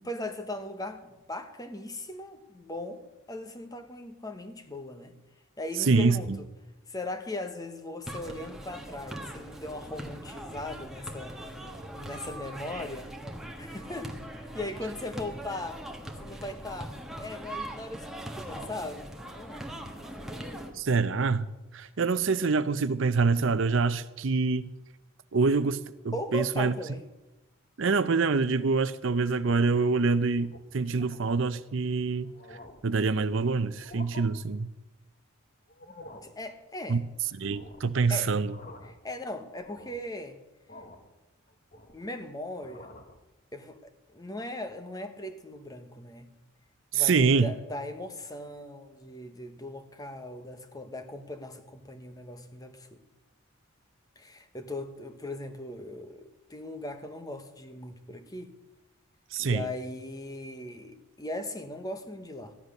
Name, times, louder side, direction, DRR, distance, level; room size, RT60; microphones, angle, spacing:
voice 1, 0.0-5.1 5.6-6.5 6.9-11.4 11.9-13.1 13.6-15.8 16.2-19.7 26.1-27.0 36.2-37.0 38.1-38.3 38.8-40.4 41.9-42.9 43.5-46.3 46.9-53.0 54.2-58.5 59.4-62.5, left 1 dB, 15° left, 7 dB, 1.1 m, -39 dB
voice 2, 5.8-6.4 20.7-21.5 21.7-24.7 25.3-26.7 27.8-32.3 32.8-34.7 36.9-37.0 37.4-38.5 46.9-47.5 59.3-59.7, right 4 dB, 65° right, 14 dB, 0.6 m, -25 dB
sound 1, 8.1-20.7, right 1 dB, ahead, 1.4 m, -41 dB
sound 2, 29.4-29.9 30.4-30.6 31.0-31.2 31.8-31.9 32.2-32.9 33.7-34.3 35.7-36.4 37.4-38.0 38.3-39.1 39.5-40.1 40.7-41.1 41.5-42.2 42.5-43.2, left 2 dB, 35° left, 1.4 m, -49 dB
14.5 x 10.5 x 6.5 m, 1.0 s
head